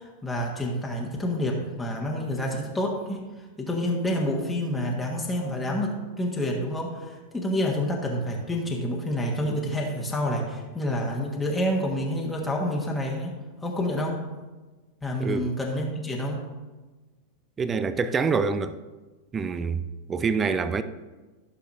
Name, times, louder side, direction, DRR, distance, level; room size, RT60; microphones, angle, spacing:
voice 1, 0.0-3.3 3.6-13.3 13.6-14.2 15.0-16.5, left 1 dB, 5° left, 1.5 m, -28 dB
voice 2, 15.2-15.5 17.6-18.7 19.3-19.8 20.1-20.8, right 5 dB, 20° right, 0.5 m, -26 dB
14.5 x 6.7 x 2.7 m
figure-of-eight pair, 90°, 0 cm